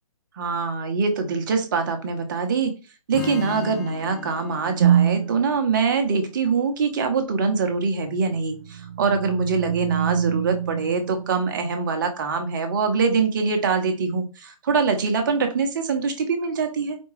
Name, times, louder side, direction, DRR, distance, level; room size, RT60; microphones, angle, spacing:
voice 1, 0.3-2.7 3.1-17.0, right 5 dB, 35° right, 5 dB, 0.7 m, -24 dB
Strum, 3.1-7.3, left 6 dB, 35° left, 1.1 m, -38 dB
sound 1, 4.8-5.4 8.2-11.7, right 9 dB, 65° right, 0.5 m, -24 dB
4.3 x 2.3 x 3.2 m, 0.32 s
hypercardioid pair, 155°, 19 cm